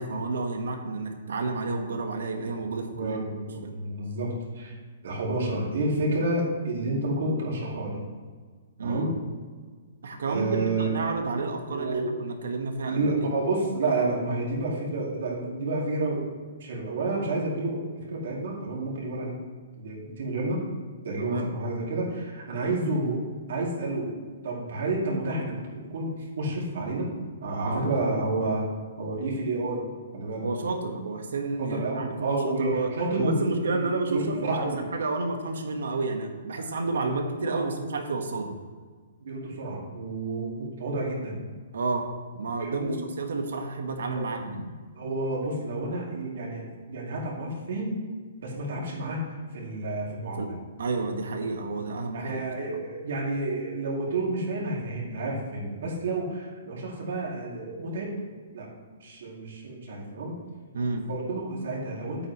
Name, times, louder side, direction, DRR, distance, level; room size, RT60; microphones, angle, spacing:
voice 1, 0.0-3.2 3.6-3.7 8.8-9.1 10.0-13.3 21.2-21.5 27.6-27.8 30.4-38.5 41.7-42.1 42.3-44.7 50.4-50.5 50.8-52.4 60.7-61.1, right 3 dB, 80° right, 4 dB, 1.4 m, -30 dB
voice 2, 2.9-4.8 5.0-8.0 8.8-9.1 10.2-10.9 11.7-12.2 12.9-16.3 16.6-19.4 19.7-20.6 21.0-23.2 23.5-24.2 24.4-27.1 27.4-28.7 29.0-29.8 30.1-30.5 31.6-34.8 36.6-36.7 36.9-37.7 39.2-41.4 42.6-43.0 44.1-44.3 44.9-48.0 48.4-50.5 52.1-58.2 58.5-58.7 59.0-60.3 61.1-62.3, right 2 dB, 60° right, -3 dB, 2.6 m, -30 dB
9.9 x 8.6 x 3.1 m, 1.5 s
hypercardioid pair, 175°, 0 cm